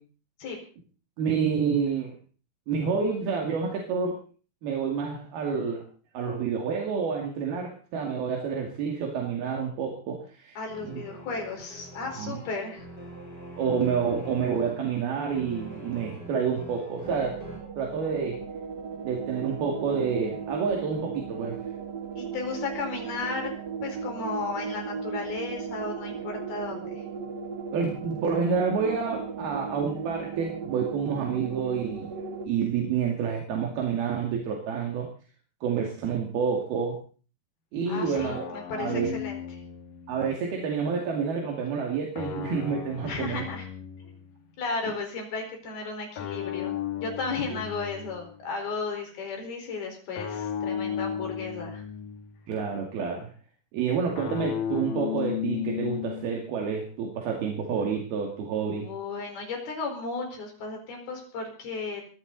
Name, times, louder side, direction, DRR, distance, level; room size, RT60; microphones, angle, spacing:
voice 1, 1.2-2.2 2.7-4.2 4.6-5.8 6.1-10.6 10.8-11.0 12.0-12.4 13.6-17.4 17.8-18.4 19.0-21.6 27.7-32.1 32.5-35.1 35.6-37.0 37.7-39.2 40.1-43.4 52.5-53.3 53.7-58.9, right 6 dB, 85° right, 0 dB, 4.3 m, -29 dB
voice 2, 10.6-12.9 22.2-23.5 23.8-27.0 37.9-39.6 43.0-43.7 44.0-44.1 44.6-51.8 58.7-62.1, left 4 dB, 85° left, 3 dB, 6.5 m, -34 dB
sound 1, 10.7-17.6, right 1 dB, 25° left, 5.0 m, -43 dB
sound 2, 17.0-32.5, right 6 dB, 45° right, 1.5 m, -36 dB
sound 3, 38.2-40.5 42.2-44.4 46.2-48.5 50.2-52.4 54.2-56.5, left 9 dB, 65° left, 3.3 m, -34 dB
21.5 x 15.0 x 4.0 m, 0.40 s
omnidirectional pair, 4.3 m